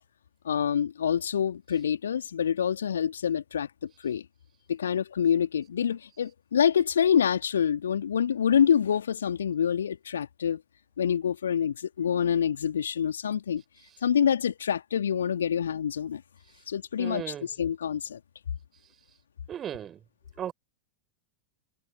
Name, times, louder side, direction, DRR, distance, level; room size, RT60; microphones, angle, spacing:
voice 1, 0.4-4.2 4.7-10.6 11.0-13.6 14.0-16.2 16.7-17.2 17.6-18.2, left 8 dB, 65° left, 3.5 m, -26 dB
voice 2, 17.0-17.5 19.5-20.0 20.4-20.5, right 10 dB, 25° right, 5.4 m, -36 dB
figure-of-eight pair, 90°, 0 cm